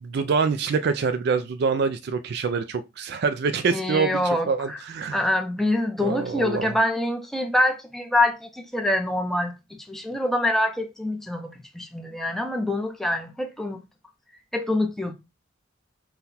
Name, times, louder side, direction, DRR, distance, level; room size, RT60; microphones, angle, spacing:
voice 1, 0.0-5.2 6.0-6.7, right 5 dB, 55° right, 0.3 m, -25 dB
voice 2, 3.7-4.8 5.1-13.8 14.5-15.1, left 1 dB, ahead, 0.6 m, -25 dB
5.7 x 2.2 x 4.1 m
head